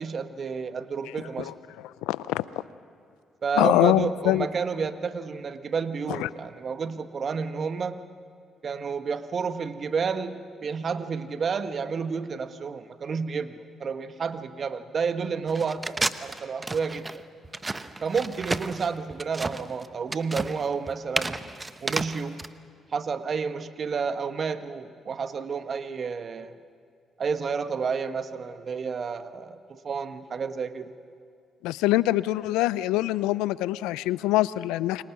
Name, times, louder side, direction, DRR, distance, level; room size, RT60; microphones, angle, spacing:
voice 1, 0.0-1.5 3.4-8.0 8.6-17.2 18.0-21.4 21.8-22.4 22.9-26.5 27.2-31.0, right 5 dB, 50° right, 10 dB, 1.3 m, -30 dB
voice 2, 2.0-2.4 3.6-4.5 6.1-6.3 31.6-35.0, left 16 dB, 85° left, 18 dB, 0.5 m, -24 dB
sound 1, 15.5-22.5, right 2 dB, 25° right, 1.0 m, -32 dB
29.0 x 24.0 x 6.1 m, 2.4 s
supercardioid pair, 55°, 0 cm